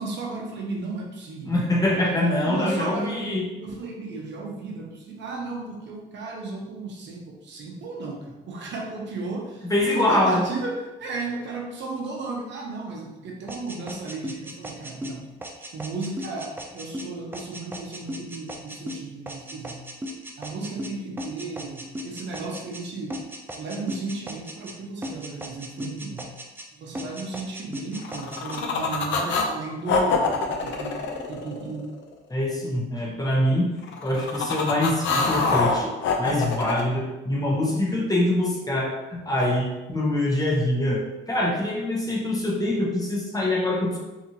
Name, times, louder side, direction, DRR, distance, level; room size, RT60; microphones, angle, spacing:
voice 1, 0.0-1.6 1.9-2.2 2.4-3.3 3.6-15.3 15.7-19.8 20.4-23.2 23.5-26.3 26.7-31.0 31.3-31.9, right 3 dB, 65° right, -1 dB, 0.7 m, -34 dB
voice 2, 1.5-3.5 9.7-10.4 32.3-33.7 34.0-35.9 36.2-44.0, left 1 dB, 20° left, -2 dB, 0.7 m, -24 dB
sound 1, 13.5-22.8 23.1-24.8 25.0-26.7 27.0-28.6, equal, 10° right, 0.3 m, -37 dB
sound 2, 28.0-29.5 29.9-32.0 33.8-36.8, left 4 dB, 70° left, 0.5 m, -25 dB
2.8 x 2.4 x 2.8 m, 1.1 s
cardioid pair, 90°, 20 cm